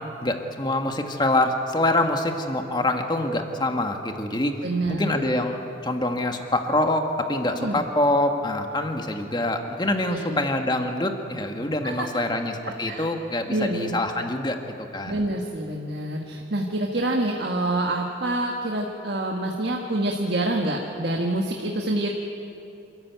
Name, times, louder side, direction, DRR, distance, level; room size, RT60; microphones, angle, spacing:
voice 1, 0.0-4.6 4.9-15.2, left 1 dB, 25° left, 5 dB, 1.5 m, -25 dB
voice 2, 4.6-5.3 7.5-7.8 10.0-10.4 11.8-12.1 12.6-13.1 13.5-14.0 15.0-22.1, right 1 dB, 60° right, 1 dB, 1.6 m, -27 dB
27.5 x 14.0 x 9.2 m, 2.9 s
head